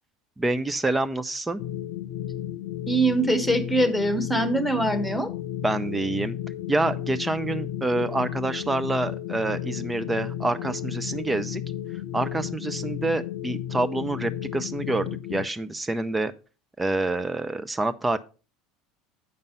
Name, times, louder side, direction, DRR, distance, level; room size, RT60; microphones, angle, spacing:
voice 1, 0.4-1.6 5.6-6.4 6.7-11.6 12.1-16.3 16.8-18.2, right 2 dB, 10° right, 10 dB, 0.5 m, -27 dB
sound 1, 1.6-15.5, left 11 dB, 55° left, 0.3 m, -33 dB
voice 2, 2.9-5.3, right 1 dB, 5° left, 9 dB, 1.3 m, -23 dB
8.0 x 5.4 x 5.3 m, 0.34 s
figure-of-eight pair, 70°, 0 cm